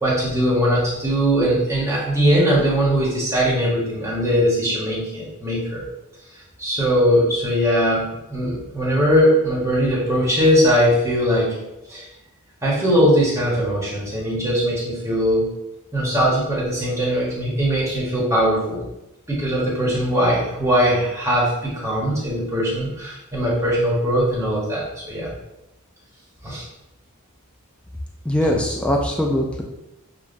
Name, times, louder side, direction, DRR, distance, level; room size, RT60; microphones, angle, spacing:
voice 1, 0.0-5.8 6.6-8.0 8.3-11.6 11.9-12.0 12.6-15.5 15.9-18.8 19.3-25.3 26.4-26.6, equal, 15° right, -6 dB, 1.1 m, -20 dB
voice 2, 28.3-29.6, left 1 dB, 5° left, 0 dB, 0.4 m, -21 dB
6.9 x 2.4 x 2.5 m, 0.92 s
head